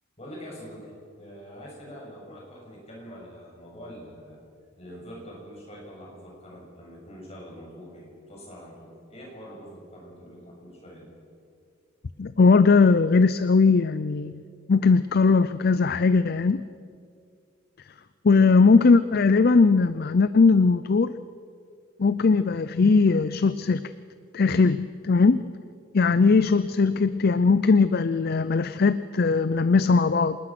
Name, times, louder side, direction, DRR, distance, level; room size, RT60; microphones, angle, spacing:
voice 1, 0.2-0.9 1.2-4.4 4.8-11.1, equal, 30° left, -3 dB, 6.8 m, -44 dB
voice 2, 12.2-14.3 14.7-16.6 18.2-21.1 22.0-23.9 24.3-25.4 25.9-30.4, left 4 dB, 50° left, 14 dB, 0.5 m, -19 dB
27.0 x 20.0 x 6.0 m, 2.3 s
head